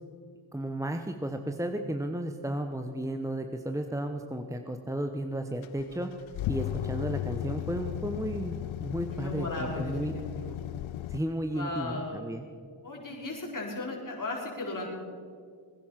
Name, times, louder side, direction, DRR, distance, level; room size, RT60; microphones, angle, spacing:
voice 1, 0.5-6.1 6.5-10.2 11.1-12.4, right 1 dB, 5° right, 6 dB, 1.0 m, -33 dB
sound 1, 5.6-11.2, left 13 dB, 75° left, 0.6 m, -35 dB
voice 2, 9.1-10.6 11.5-12.2 12.8-14.9, left 2 dB, 40° left, -2 dB, 5.0 m, -36 dB
21.0 x 10.5 x 5.9 m, 2.2 s
cardioid pair, 55°, 49 cm